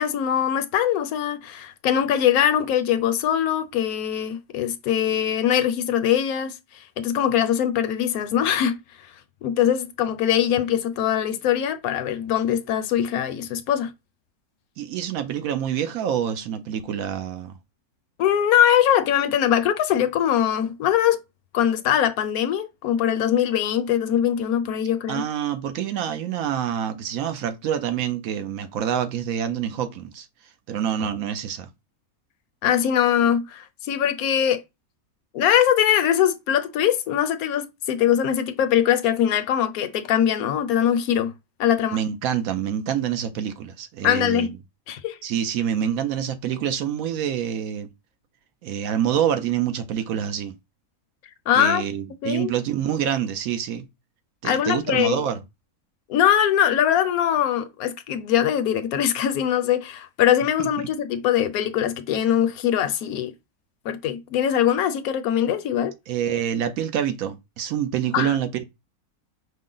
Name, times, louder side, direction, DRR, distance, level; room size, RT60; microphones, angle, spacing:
voice 1, 0.0-6.6 7.0-8.8 9.4-13.9 18.2-21.2 21.5-25.2 32.6-34.6 35.3-41.3 41.6-42.0 44.0-44.5 44.9-45.2 51.5-51.8 52.2-52.5 54.4-55.2 56.1-63.3 63.8-65.9 68.1-68.4, left 10 dB, 75° left, 1.1 m, -22 dB
voice 2, 14.8-17.6 25.1-30.3 30.7-31.7 41.9-44.5 45.2-47.9 48.6-50.5 51.5-53.9 54.4-55.4 60.6-60.7 66.1-68.6, right 9 dB, 70° right, 1.0 m, -26 dB
5.3 x 2.1 x 3.8 m
omnidirectional pair, 1.6 m